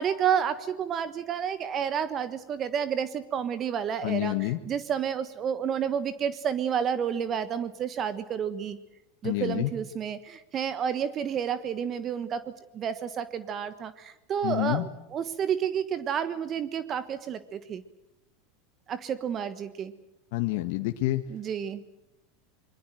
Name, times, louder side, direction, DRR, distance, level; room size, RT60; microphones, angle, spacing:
voice 1, 0.0-8.8 9.2-17.8 18.9-19.9 21.3-21.8, right 8 dB, 35° right, 14 dB, 1.3 m, -30 dB
voice 2, 4.0-4.6 9.2-9.7 14.4-14.9 20.3-21.2, left 18 dB, 65° left, 6 dB, 1.5 m, -28 dB
25.0 x 22.5 x 7.8 m, 0.94 s
hypercardioid pair, 100°, 0 cm